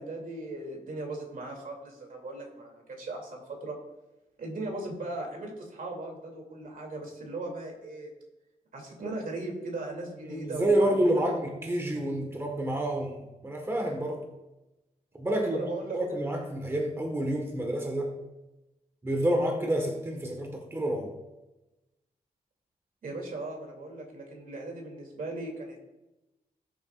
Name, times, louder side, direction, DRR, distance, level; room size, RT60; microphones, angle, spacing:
voice 1, 0.0-3.8 4.4-8.1 8.7-11.4 15.3-16.0 23.0-25.8, right 2 dB, 65° right, 1 dB, 2.7 m, -38 dB
voice 2, 10.2-14.2 15.1-18.1 19.0-21.1, right 1 dB, 15° right, 2 dB, 1.4 m, -29 dB
18.0 x 7.1 x 2.4 m, 1.0 s
wide cardioid pair, 135°, 15 cm